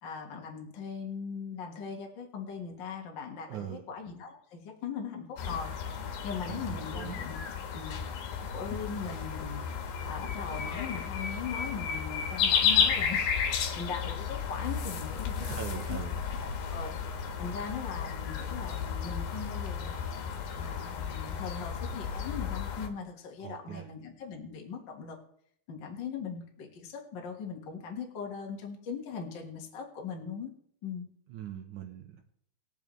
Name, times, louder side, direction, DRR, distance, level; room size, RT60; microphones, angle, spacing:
voice 1, 0.0-8.1 8.5-9.6 10.1-15.6 15.9-16.0 16.4-16.9 17.4-20.1 20.6-25.2 25.7-30.5 30.8-31.1, left 6 dB, 50° left, 1 dB, 1.3 m, -40 dB
voice 2, 3.5-3.8 6.5-7.2 15.4-16.2 23.4-23.9 31.3-32.2, right 10 dB, 70° right, 2 dB, 2.0 m, -41 dB
sound 1, 5.4-22.9, left 7 dB, 75° left, 3.0 m, -33 dB
20.5 x 7.0 x 3.2 m, 0.67 s
omnidirectional pair, 4.4 m